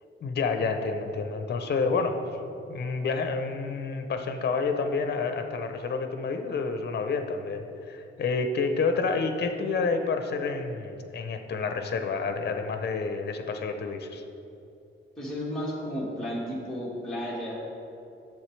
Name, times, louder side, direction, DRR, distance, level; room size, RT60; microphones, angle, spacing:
voice 1, 0.2-2.1 2.7-14.2, left 4 dB, 50° left, 6 dB, 0.7 m, -29 dB
voice 2, 15.2-17.6, equal, ahead, -6 dB, 1.7 m, -33 dB
10.5 x 7.5 x 3.3 m, 2.7 s
wide cardioid pair, 170°, 21 cm